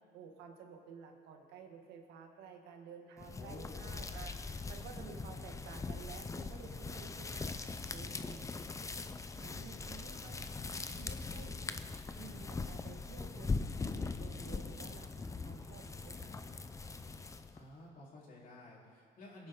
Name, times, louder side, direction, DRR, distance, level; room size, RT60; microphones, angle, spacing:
voice 1, 0.0-7.5 7.9-8.5 9.4-11.6 12.2-16.7, right 6 dB, 85° right, 3 dB, 1.8 m, -53 dB
sound 1, 3.2-17.6, left 4 dB, 20° left, 0.6 m, -41 dB
voice 2, 3.4-4.0 17.5-19.5, left 2 dB, 55° left, -4 dB, 3.7 m, -52 dB
23.5 x 10.5 x 3.7 m, 2.1 s
cardioid pair, 110°, 17 cm